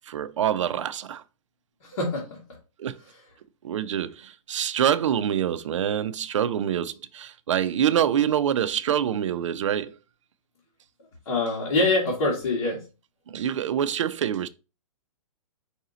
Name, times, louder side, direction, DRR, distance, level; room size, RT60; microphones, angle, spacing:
voice 1, 0.1-1.2 2.8-3.0 3.6-9.9 13.3-14.5, right 9 dB, 60° right, 0.4 m, -25 dB
voice 2, 1.8-2.4 11.2-12.8, left 2 dB, 55° left, 1.5 m, -24 dB
4.9 x 2.7 x 3.9 m
hypercardioid pair, 165°, 18 cm